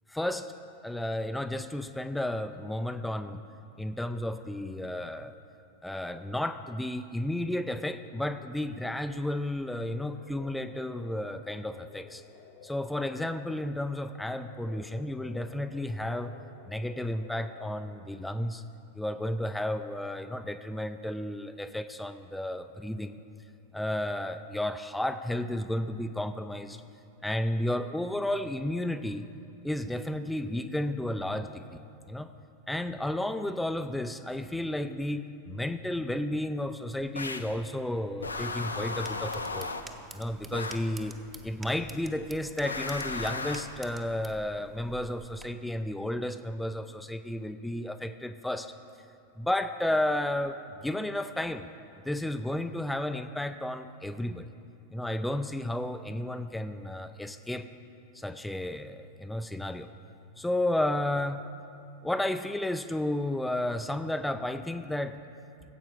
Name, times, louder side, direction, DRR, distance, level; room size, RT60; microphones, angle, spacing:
voice 1, 0.1-0.5 0.8-3.4 3.8-5.4 5.8-12.2 12.6-16.3 16.7-18.6 18.9-23.2 23.7-26.8 27.2-29.3 29.6-31.7 32.1-32.3 32.7-39.7 40.1-41.2 41.4-48.7 49.4-51.7 52.1-54.5 54.9-57.7 58.1-59.9 60.4-61.5 62.0-65.2, left 1 dB, 5° left, 9 dB, 0.4 m, -32 dB
sound 1, 9.9-18.3, left 7 dB, 60° left, 1.3 m, -53 dB
sound 2, 37.1-37.6 38.2-40.0 40.5-40.9 42.6-43.8, left 3 dB, 80° left, 0.5 m, -35 dB
sound 3, 38.2-45.4, right 3 dB, 15° right, 0.8 m, -49 dB
16.0 x 8.0 x 4.7 m, 2.5 s
figure-of-eight pair, 90°, 0 cm